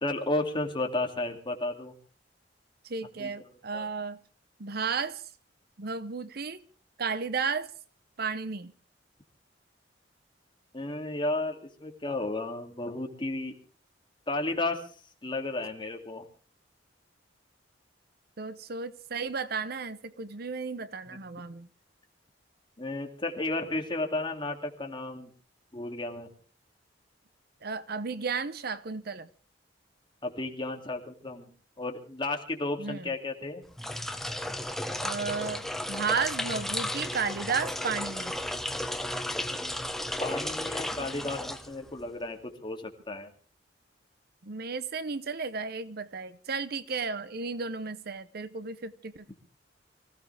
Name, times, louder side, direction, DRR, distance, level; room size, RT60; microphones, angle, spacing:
voice 1, 0.0-1.9 3.2-3.9 10.7-13.5 14.3-14.8 15.2-16.2 21.1-21.2 22.8-25.3 25.7-26.3 30.2-31.5 31.8-33.6 39.5-39.8 40.2-43.3, left 2 dB, 25° left, 2.6 m, -33 dB
voice 2, 2.8-4.2 4.6-5.2 5.8-6.6 7.0-7.7 8.2-8.7 18.4-21.7 27.6-29.3 32.8-33.1 35.0-38.3 44.4-49.4, right 5 dB, 55° right, 0.8 m, -33 dB
sound 1, 33.7-42.1, left 1 dB, ahead, 1.1 m, -34 dB
25.0 x 16.0 x 3.4 m
head